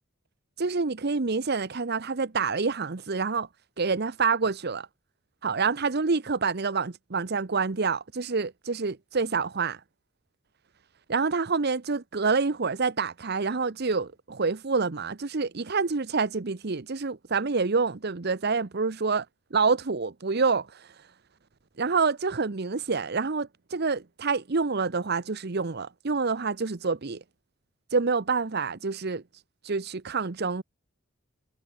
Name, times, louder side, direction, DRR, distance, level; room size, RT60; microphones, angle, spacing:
voice 1, 0.6-3.5 3.8-4.9 5.4-9.8 11.1-19.2 19.5-20.9 21.8-27.2 27.9-29.2 29.6-30.6, right 4 dB, 55° right, 0.9 m, -27 dB
head